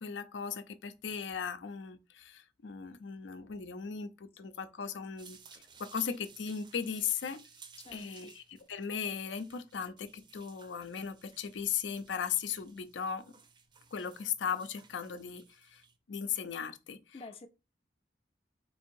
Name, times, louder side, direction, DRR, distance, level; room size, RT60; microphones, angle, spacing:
voice 1, 0.0-7.4 7.9-13.3 13.9-17.2, left 7 dB, 85° left, 0.5 m, -37 dB
sound 1, 5.2-16.0, right 6 dB, 25° right, 0.4 m, -58 dB
voice 2, 7.8-8.3 17.1-17.5, left 3 dB, 30° left, 0.5 m, -49 dB
3.3 x 2.7 x 4.5 m
head